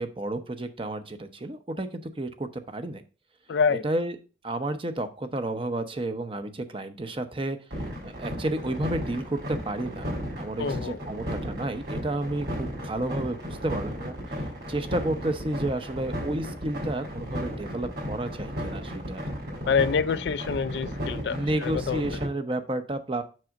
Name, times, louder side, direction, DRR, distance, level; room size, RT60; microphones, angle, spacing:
voice 1, 0.0-3.0 3.8-4.2 4.4-7.6 8.0-19.2 21.3-23.2, right 1 dB, 30° right, 0.8 m, -31 dB
voice 2, 3.5-3.8 10.6-11.0 19.7-22.2, left 6 dB, 65° left, 0.3 m, -26 dB
sound 1, 7.7-22.2, equal, 60° right, 4.0 m, -34 dB
7.5 x 6.2 x 2.5 m
head